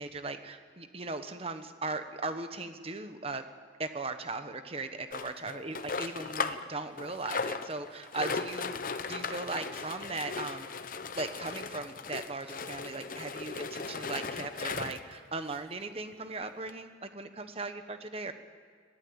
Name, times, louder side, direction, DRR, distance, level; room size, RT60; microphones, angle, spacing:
voice 1, 0.0-3.4 3.8-10.7 11.0-18.3, right 3 dB, 35° right, 8 dB, 1.3 m, -38 dB
sound 1, 5.1-6.7 7.0-15.1 15.8-15.9 16.1-16.2 16.7-16.8, left 4 dB, 50° left, 0.9 m, -37 dB
21.5 x 15.0 x 8.9 m, 2.1 s
head